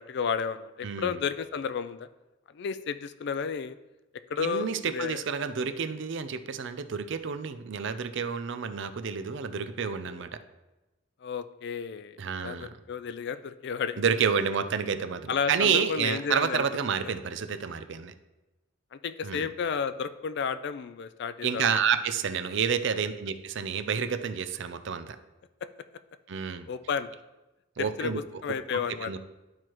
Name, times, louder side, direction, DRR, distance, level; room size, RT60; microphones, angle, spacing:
voice 1, 0.0-2.1 2.5-3.8 4.3-5.2 11.2-12.2 12.4-14.0 15.3-16.7 17.0-17.1 18.9-21.6 26.7-27.1 27.8-28.1 28.4-29.1, left 6 dB, 60° left, 12 dB, 0.4 m, -32 dB
voice 2, 0.8-1.2 4.4-10.3 12.2-12.7 14.0-18.1 19.2-19.5 21.4-25.2 26.3-26.7 27.8-28.2 29.0-29.2, right 6 dB, 65° right, 10 dB, 0.5 m, -29 dB
12.0 x 4.6 x 3.0 m, 1.1 s
head